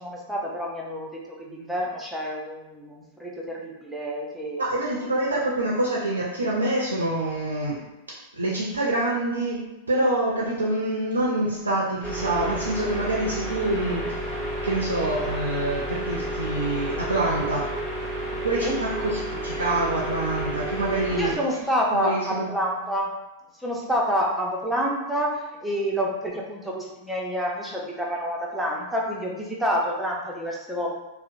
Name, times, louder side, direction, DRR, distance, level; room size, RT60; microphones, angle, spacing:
voice 1, 0.0-4.6 18.5-18.8 21.1-23.1 23.6-25.3 25.6-30.9, equal, ahead, -3 dB, 0.6 m, -28 dB
voice 2, 4.6-7.8 8.3-9.6 9.9-17.7 18.4-21.3 21.9-22.5, right 2 dB, 85° right, -3 dB, 0.4 m, -26 dB
sound 1, 12.0-21.4, right 1 dB, 20° left, 1.2 m, -31 dB
2.8 x 2.0 x 2.5 m, 1.0 s
hypercardioid pair, 95°, 0 cm